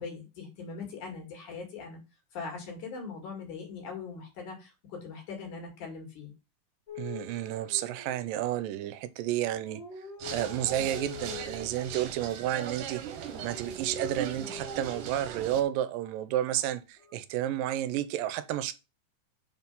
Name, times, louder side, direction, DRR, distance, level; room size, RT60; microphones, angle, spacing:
voice 1, 0.0-2.0 2.3-6.3, left 4 dB, 65° left, 3.5 m, -41 dB
sound 1, 6.9-8.6 9.4-12.0 12.9-15.5 16.5-17.1, left 3 dB, 15° left, 1.6 m, -45 dB
voice 2, 7.0-9.8 10.3-18.7, right 12 dB, 90° right, 2.3 m, -31 dB
sound 2, 10.2-15.6, right 9 dB, 70° right, 2.3 m, -40 dB
6.3 x 4.5 x 5.4 m
omnidirectional pair, 3.9 m